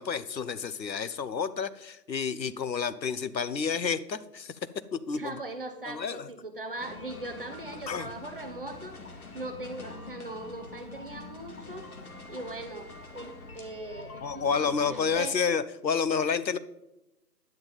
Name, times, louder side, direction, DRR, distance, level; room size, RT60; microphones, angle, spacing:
voice 1, 0.0-4.5 4.9-5.4 5.9-6.3 7.9-8.1 14.2-16.6, left 6 dB, 85° left, 15 dB, 0.9 m, -30 dB
voice 2, 5.1-11.9 12.3-15.3, right 2 dB, 35° right, 6 dB, 0.9 m, -40 dB
sound 1, 6.8-15.2, left 3 dB, 60° left, 2.0 m, -45 dB
10.5 x 9.1 x 3.9 m, 0.89 s
figure-of-eight pair, 160°, 50 cm